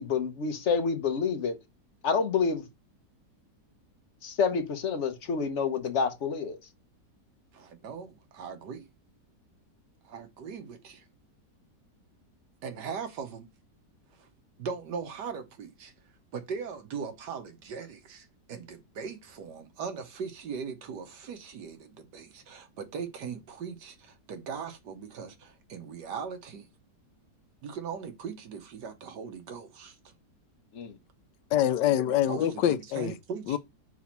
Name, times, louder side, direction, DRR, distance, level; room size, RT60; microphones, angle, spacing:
voice 1, 0.0-1.6 2.0-2.6 4.2-6.6 30.7-30.9, left 5 dB, 45° left, 1.2 m, -28 dB
voice 2, 7.5-8.8 10.0-11.0 12.6-13.5 14.1-14.3 14.6-15.9 16.3-26.7 27.6-30.1 32.2-33.6, right 6 dB, 75° right, 1.7 m, -39 dB
voice 3, 31.5-33.1 33.5-33.6, left 11 dB, 90° left, 1.3 m, -25 dB
4.8 x 4.1 x 5.8 m
omnidirectional pair, 1.9 m